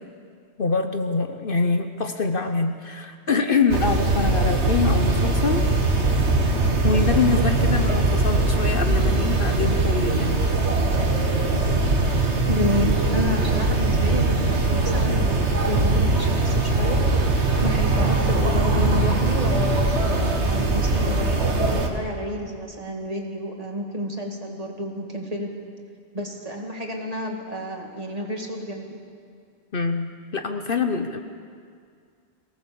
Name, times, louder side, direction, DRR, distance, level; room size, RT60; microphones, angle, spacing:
voice 1, 0.6-5.7 6.8-10.4 29.7-31.2, left 4 dB, 55° left, 7 dB, 1.1 m, -24 dB
sound 1, 3.7-21.9, right 2 dB, 80° right, 2.2 m, -21 dB
voice 2, 12.5-25.5 26.1-29.0, equal, 35° right, 0 dB, 2.5 m, -30 dB
23.5 x 18.0 x 7.1 m, 2.2 s
omnidirectional pair, 1.1 m